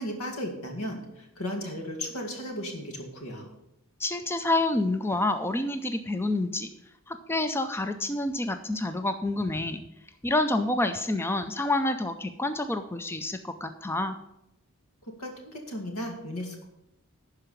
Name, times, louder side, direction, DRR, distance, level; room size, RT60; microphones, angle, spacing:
voice 1, 0.0-3.5 15.2-16.6, equal, 75° left, 3 dB, 2.2 m, -35 dB
voice 2, 4.0-6.7 7.1-9.8 10.2-14.2, left 2 dB, 10° left, 8 dB, 0.4 m, -28 dB
11.5 x 4.8 x 6.8 m, 0.86 s
head